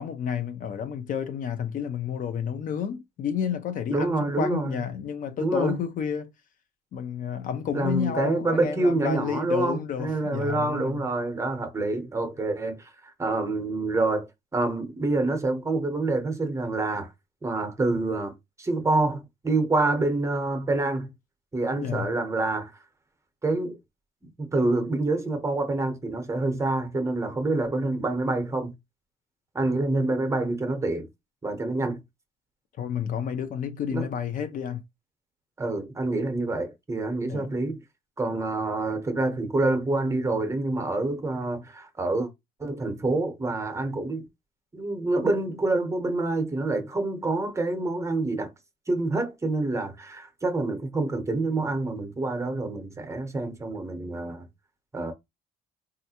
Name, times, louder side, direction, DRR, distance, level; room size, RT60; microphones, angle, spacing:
voice 1, 0.0-6.3 6.9-11.0 21.8-22.1 32.8-34.8 37.3-37.5, left 8 dB, 50° left, 0.5 m, -30 dB
voice 2, 3.9-4.8 5.4-5.8 7.7-17.1 17.4-18.3 18.6-21.1 21.5-22.8 23.4-23.8 24.4-28.7 29.5-31.1 31.4-32.0 33.9-34.1 35.6-37.8 38.2-42.3 42.6-44.3 44.7-48.5 48.9-54.5 54.9-55.1, right 2 dB, 15° right, 0.8 m, -27 dB
3.3 x 2.4 x 2.8 m
cardioid pair, 110°, 17 cm